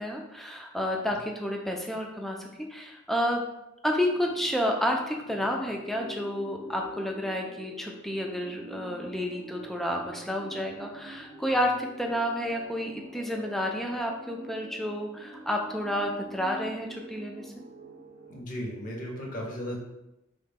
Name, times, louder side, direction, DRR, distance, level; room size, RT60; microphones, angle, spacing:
voice 1, 0.0-3.4 3.8-17.5, equal, ahead, 1 dB, 0.3 m, -30 dB
sound 1, 4.1-18.4, equal, 85° right, 0.6 m, -45 dB
voice 2, 18.3-19.8, equal, 40° left, -1 dB, 0.7 m, -35 dB
3.2 x 2.2 x 3.4 m, 0.91 s
head